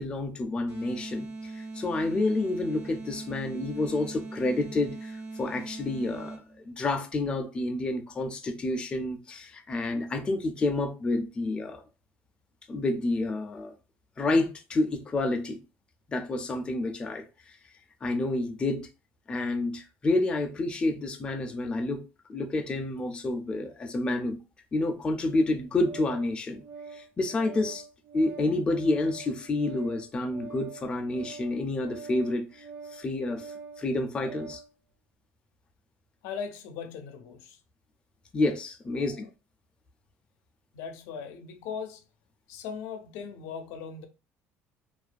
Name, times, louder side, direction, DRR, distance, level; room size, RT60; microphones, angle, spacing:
voice 1, 0.0-11.8 12.7-13.7 14.2-15.6 16.1-17.6 18.0-18.9 19.3-22.0 22.3-24.4 24.7-26.6 26.9-27.8 28.1-32.6 32.9-34.6 38.3-39.2, left 2 dB, 20° left, 0.3 m, -29 dB
sound 1, 0.7-6.6, right 3 dB, 75° right, 0.9 m, -40 dB
Organ, 25.3-34.7, right 5 dB, 35° right, 0.5 m, -45 dB
voice 2, 36.2-37.6 38.9-39.3 40.7-42.0 42.5-44.1, left 6 dB, 85° left, 0.4 m, -39 dB
2.3 x 2.2 x 2.4 m
cardioid pair, 145°, 5 cm